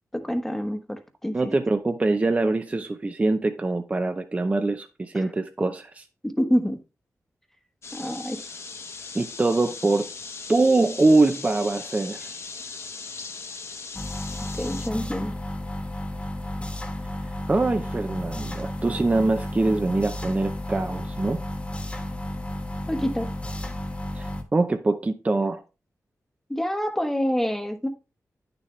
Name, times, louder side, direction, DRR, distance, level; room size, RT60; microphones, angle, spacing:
voice 1, 0.1-1.3 5.1-5.3 6.4-6.8 7.9-8.5 14.6-15.3 22.9-23.3 26.5-27.9, equal, 5° left, 7 dB, 1.1 m, -27 dB
voice 2, 1.3-6.0 9.1-10.1 10.5-12.3 17.3-21.4 24.2-25.6, right 2 dB, 25° right, 7 dB, 0.6 m, -23 dB
sound 1, 7.8-14.9, left 4 dB, 50° left, 1.1 m, -39 dB
sound 2, 13.9-24.4, left 1 dB, 20° left, 1.4 m, -33 dB
11.0 x 6.9 x 3.2 m, 0.30 s
wide cardioid pair, 150°, 6 cm